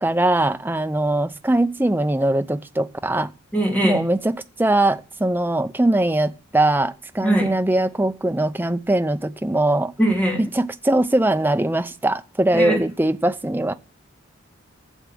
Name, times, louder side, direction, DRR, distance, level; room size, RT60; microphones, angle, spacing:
voice 1, 0.0-3.3 3.8-4.3 4.6-9.9 10.4-13.7, right 1 dB, 10° right, 0.5 m, -21 dB
voice 2, 3.5-4.0 7.2-7.5 10.0-10.4 12.5-12.8, right 1 dB, 5° left, 2.9 m, -20 dB
8.1 x 7.2 x 7.7 m
head